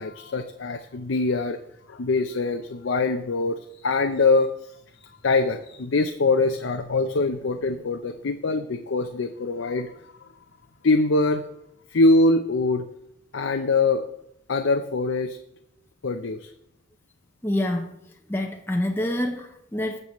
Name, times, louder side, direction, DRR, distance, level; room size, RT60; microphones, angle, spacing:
voice 1, 0.0-1.6 1.9-4.5 5.2-9.9 10.8-11.4 11.9-12.8 13.3-14.0 14.5-15.4 16.0-16.5, left 3 dB, 80° left, 6 dB, 0.6 m, -23 dB
voice 2, 17.4-17.9 18.3-20.0, left 1 dB, 10° left, 1 dB, 0.7 m, -27 dB
20.0 x 6.8 x 3.1 m, 0.78 s
head